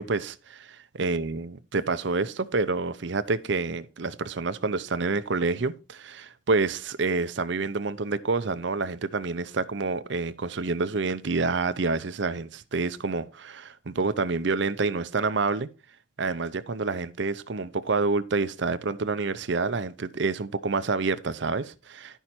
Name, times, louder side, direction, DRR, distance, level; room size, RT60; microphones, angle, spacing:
voice 1, 0.0-15.7 16.2-22.2, right 3 dB, 60° right, 0.6 m, -28 dB
11.0 x 5.5 x 4.3 m
head